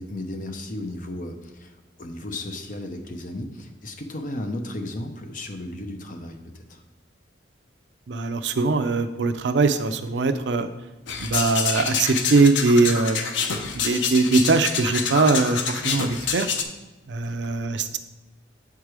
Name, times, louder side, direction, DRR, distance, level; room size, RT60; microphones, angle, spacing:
voice 1, 0.0-6.8 17.2-17.7, left 1 dB, 45° left, 5 dB, 0.8 m, -35 dB
voice 2, 8.1-10.7 11.2-13.2 13.8-16.5 17.1-18.0, right 3 dB, 70° right, 9 dB, 0.5 m, -21 dB
sound 1, 11.1-16.6, left 6 dB, 80° left, 0.7 m, -27 dB
7.3 x 4.7 x 4.9 m, 1.1 s
head